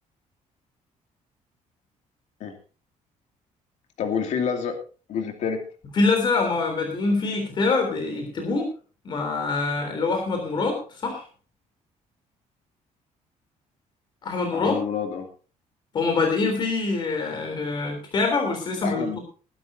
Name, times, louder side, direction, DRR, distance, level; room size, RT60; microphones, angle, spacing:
voice 1, 4.0-4.8 5.1-5.6 14.5-15.3 18.8-19.2, left 6 dB, 65° left, 5 dB, 2.6 m, -28 dB
voice 2, 6.0-8.7 9.1-11.2 14.2-14.8 15.9-19.0, left 3 dB, 35° left, 3 dB, 3.5 m, -24 dB
20.5 x 12.0 x 2.8 m, 0.37 s
cardioid pair, 175°, 13 cm